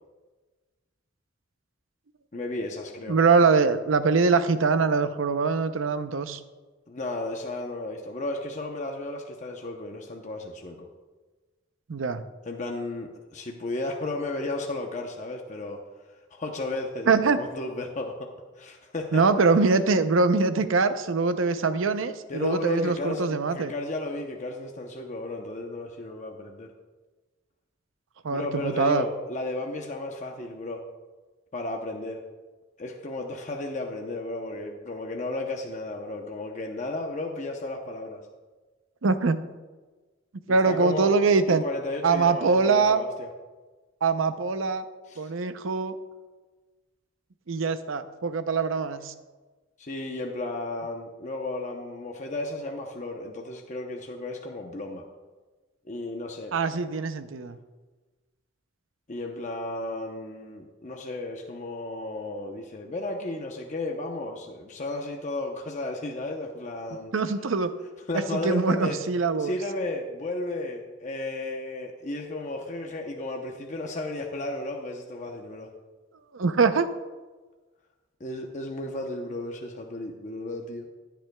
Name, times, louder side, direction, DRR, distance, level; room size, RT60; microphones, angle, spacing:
voice 1, 2.3-3.2 6.9-10.9 12.4-15.8 16.3-18.3 18.6-19.2 22.3-26.7 28.3-30.8 31.5-32.2 32.8-38.2 40.5-41.1 41.5-43.3 45.1-45.3 49.8-55.1 55.8-56.9 59.1-67.1 68.1-69.0 69.4-75.7 78.2-80.9, left 2 dB, 40° left, 2 dB, 0.8 m, -34 dB
voice 2, 3.1-6.4 11.9-12.2 17.1-17.4 19.1-23.7 28.2-29.1 39.0-39.4 40.5-41.6 42.0-43.0 44.0-44.8 45.2-46.0 47.5-49.1 56.5-57.6 67.1-67.7 68.3-69.5 76.3-76.9, right 4 dB, 80° right, 11 dB, 0.6 m, -23 dB
15.0 x 9.2 x 2.3 m, 1.3 s
head